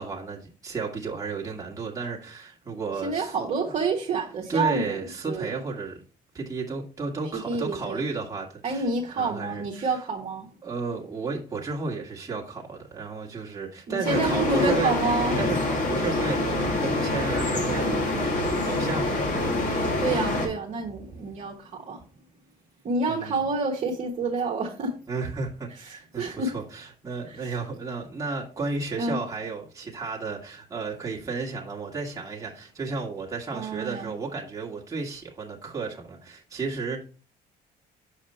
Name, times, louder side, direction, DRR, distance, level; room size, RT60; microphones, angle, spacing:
voice 1, 0.0-3.7 4.5-6.0 6.3-10.0 10.6-15.0 15.4-19.2 23.1-23.4 25.1-37.0, right 4 dB, 20° right, 1.6 m, -33 dB
voice 2, 3.0-4.9 5.3-5.5 7.5-8.0 8.6-10.5 13.9-15.3 17.8-18.1 20.0-22.0 22.8-24.9 26.2-26.5 27.3-27.4 29.0-29.2 33.5-34.1, right 3 dB, 45° right, 1.3 m, -28 dB
sound 1, 14.0-20.5, left 2 dB, 50° left, 2.2 m, -26 dB
6.7 x 4.9 x 4.2 m
cardioid pair, 110°, 17 cm